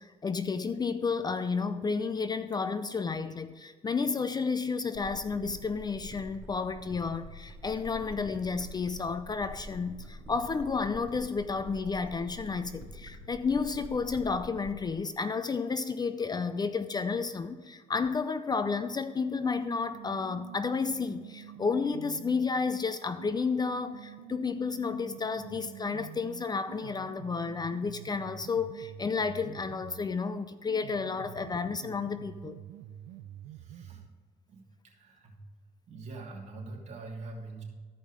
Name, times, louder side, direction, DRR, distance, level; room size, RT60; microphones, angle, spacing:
voice 1, 0.0-32.6, left 5 dB, 25° left, 0.5 m, -31 dB
sound 1, 4.9-14.9, equal, 10° right, 2.9 m, -46 dB
sound 2, 19.2-22.5 23.2-30.2 30.7-34.2, right 11 dB, 80° right, 0.6 m, -47 dB
voice 2, 31.1-31.5 33.5-34.0 34.5-35.3 35.9-37.6, right 3 dB, 40° right, 2.8 m, -45 dB
14.0 x 5.4 x 4.9 m
cardioid pair, 110°, 17 cm